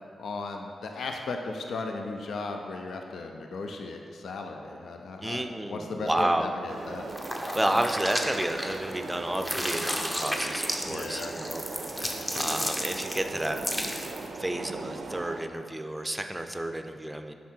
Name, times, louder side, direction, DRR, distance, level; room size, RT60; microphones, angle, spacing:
voice 1, 0.2-7.1 10.8-11.3, left 3 dB, 75° left, 3 dB, 0.4 m, -36 dB
voice 2, 5.2-6.5 7.5-13.6 14.3-17.3, right 1 dB, 15° right, 6 dB, 0.5 m, -31 dB
sound 1, 6.7-15.4, right 3 dB, 65° right, 0.4 m, -39 dB
sound 2, 7.1-9.0 9.3-14.3, equal, 15° left, 0.8 m, -33 dB
5.8 x 4.7 x 4.4 m, 2.4 s
supercardioid pair, 45°, 0 cm